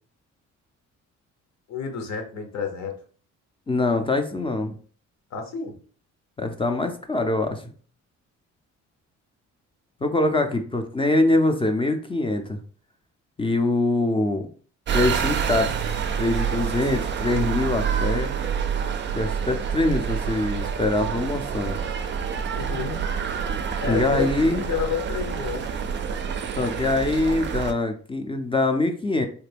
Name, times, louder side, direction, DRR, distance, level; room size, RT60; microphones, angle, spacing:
voice 1, 1.7-3.0 5.3-5.8 22.5-23.0 23.8-25.7, left 6 dB, 65° left, 4 dB, 0.9 m, -30 dB
voice 2, 3.7-4.8 6.4-7.6 10.0-12.6 13.4-14.5 14.9-15.7 16.1-18.3 19.2-21.8 23.9-24.6 26.6-29.2, left 2 dB, 20° left, 6 dB, 0.4 m, -23 dB
sound 1, 14.9-27.7, right 7 dB, 40° right, 0.4 m, -27 dB
3.3 x 2.1 x 3.3 m, 0.43 s
cardioid pair, 90°, 30 cm